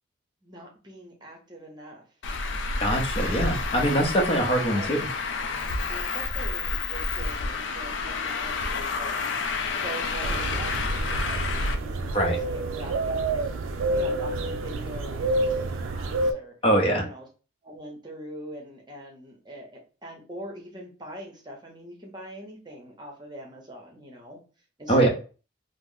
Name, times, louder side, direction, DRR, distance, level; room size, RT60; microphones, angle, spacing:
voice 1, 0.4-2.0 4.2-4.9 5.9-9.1 9.7-13.6 13.9-16.5 17.0-17.3 17.6-24.4 24.8-25.1, right 1 dB, 20° right, 1 dB, 0.9 m, -42 dB
Traffic noise roadway noise, 2.2-11.7, left 4 dB, 70° left, 0.4 m, -29 dB
voice 2, 2.8-5.1 12.1-12.4 16.6-17.0 24.9-25.1, right 1 dB, 30° left, 0 dB, 0.8 m, -23 dB
sound 1, 10.2-16.3, right 2 dB, 90° right, 0.4 m, -28 dB
2.9 x 2.0 x 3.6 m, 0.35 s
head